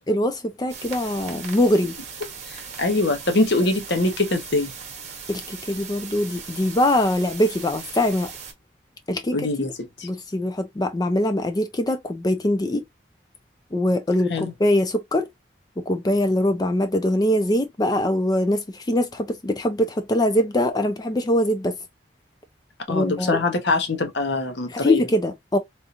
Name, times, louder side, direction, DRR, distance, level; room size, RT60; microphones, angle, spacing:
voice 1, 0.1-1.9 5.3-8.3 9.1-9.5 10.0-12.8 13.7-15.3 15.8-21.8 22.9-23.4 24.7-25.6, left 1 dB, 20° left, 0.4 m, -22 dB
sound 1, 0.7-8.5, right 6 dB, 40° right, 1.0 m, -38 dB
voice 2, 2.5-4.7 9.3-9.7 10.0-10.1 14.3-14.5 22.9-25.1, left 2 dB, 70° left, 1.0 m, -23 dB
3.6 x 2.9 x 2.5 m
head